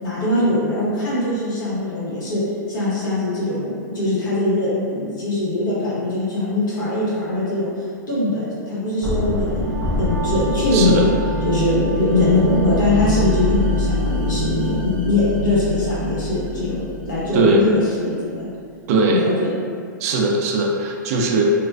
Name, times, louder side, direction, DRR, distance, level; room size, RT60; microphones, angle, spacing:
voice 1, 0.0-2.4 2.7-7.7 8.1-9.7 10.0-11.1 11.4-18.5 19.1-19.5, left 2 dB, 75° left, -10 dB, 1.2 m, -21 dB
sound 1, 9.0-17.9, left 1 dB, 15° left, 0.6 m, -25 dB
Wind instrument woodwind instrument, 9.4-14.8, right 2 dB, 60° left, 1.1 m, -32 dB
voice 2, 10.7-11.1 17.3-17.6 18.9-19.2 20.0-21.5, right 2 dB, 50° right, 0 dB, 0.4 m, -19 dB
2.4 x 2.2 x 2.3 m, 2.2 s
hypercardioid pair, 130°, 11 cm